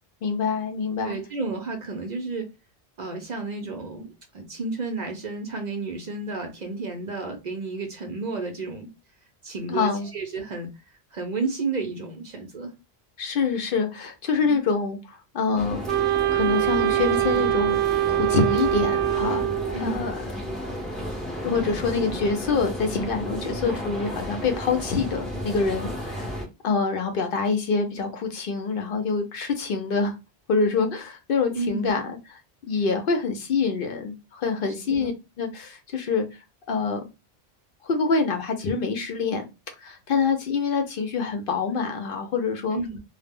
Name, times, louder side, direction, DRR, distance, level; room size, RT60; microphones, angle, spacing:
voice 1, 0.2-1.2 9.7-10.1 13.2-15.8 16.3-17.8 18.1-19.5 19.8-20.2 21.4-26.3 26.6-30.1 30.5-32.0 32.3-32.4 32.7-35.1 35.4-36.4 36.7-37.0 37.8-39.4 39.8-42.8, left 4 dB, 65° left, 0.7 m, -26 dB
voice 2, 1.0-2.5 3.0-8.9 9.4-10.7 11.1-12.7 14.4-14.6 19.7-20.1 31.5-31.9 34.9-35.1 42.7-43.0, right 3 dB, 55° right, 0.6 m, -32 dB
sound 1, 15.6-26.4, equal, ahead, 0.4 m, -33 dB
Wind instrument woodwind instrument, 15.9-19.9, right 14 dB, 85° right, 0.8 m, -23 dB
2.1 x 2.0 x 3.3 m
omnidirectional pair, 1.0 m